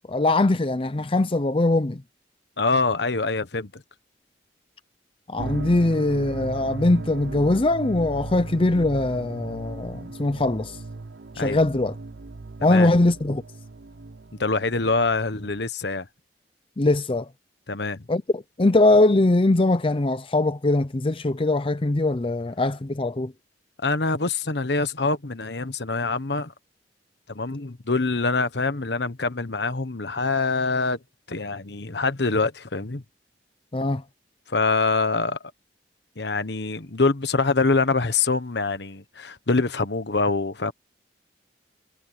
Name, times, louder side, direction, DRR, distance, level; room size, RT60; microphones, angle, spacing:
voice 1, 0.1-2.0 5.3-10.8 11.4-11.9 12.6-13.4 16.8-17.3 18.1-23.3 33.7-34.0, left 2 dB, 30° left, 0.6 m, -21 dB
voice 2, 2.6-3.8 11.4-11.6 12.6-12.9 14.4-16.1 17.7-18.0 23.8-26.5 27.3-31.0 31.3-33.0 34.5-35.4 36.2-40.7, left 3 dB, 65° left, 1.3 m, -25 dB
sound 1, 5.4-15.6, right 3 dB, 70° right, 0.7 m, -37 dB
head